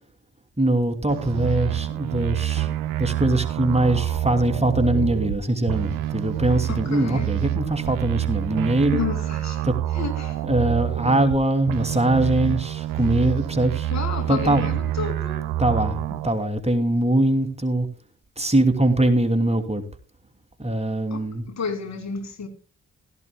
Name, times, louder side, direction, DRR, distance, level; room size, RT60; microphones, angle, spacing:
voice 1, 0.6-9.0 9.6-9.7 10.4-13.9 14.3-14.7 15.6-17.9 18.4-19.8 20.6-21.5, right 1 dB, 20° right, 2.9 m, -22 dB
sound 1, 1.1-5.4 5.7-11.4 11.7-16.3, right 12 dB, 80° right, 0.8 m, -27 dB
voice 2, 6.7-7.3 8.9-9.7 9.9-10.4 13.9-15.5 21.1-22.5, left 5 dB, 55° left, 2.9 m, -31 dB
16.5 x 14.0 x 2.3 m
hypercardioid pair, 40°, 33 cm